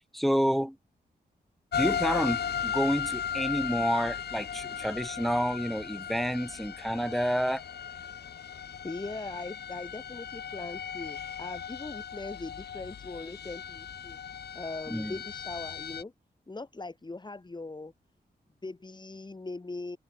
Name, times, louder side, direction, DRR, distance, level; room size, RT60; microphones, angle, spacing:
voice 1, 0.1-0.8 1.8-7.6 14.9-15.2, equal, ahead, 1.3 m, -29 dB
sound 1, 1.7-16.0, left 8 dB, 75° left, 0.9 m, -36 dB
voice 2, 8.8-14.2 14.6-16.1 16.5-17.9 18.6-20.0, left 3 dB, 25° left, 4.1 m, -40 dB
open air
wide cardioid pair, 105°, 17 cm